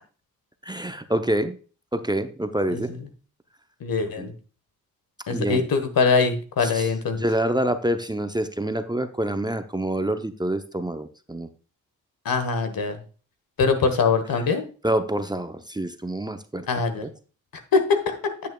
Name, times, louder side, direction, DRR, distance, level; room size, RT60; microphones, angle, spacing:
voice 1, 0.6-1.6 1.9-2.9 4.2-4.3 5.3-5.6 6.6-6.9 7.1-11.5 14.8-16.7 17.0-17.1, right 1 dB, 10° right, 9 dB, 0.7 m, -26 dB
voice 2, 3.8-4.3 5.3-7.2 12.2-13.0 13.6-14.6 16.7-17.0 17.7-18.3, left 4 dB, 70° left, 8 dB, 1.4 m, -23 dB
9.0 x 8.3 x 2.3 m, 0.37 s
supercardioid pair, 45°, 36 cm